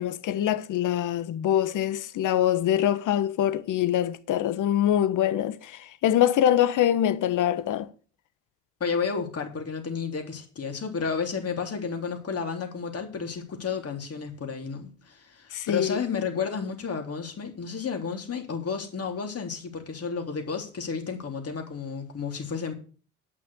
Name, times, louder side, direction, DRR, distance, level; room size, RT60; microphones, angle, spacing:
voice 1, 0.0-7.9 15.5-16.0, left 11 dB, 65° left, 1.2 m, -24 dB
voice 2, 8.8-22.7, left 5 dB, 45° left, 3.4 m, -32 dB
9.2 x 6.1 x 8.4 m
supercardioid pair, 65°, 34 cm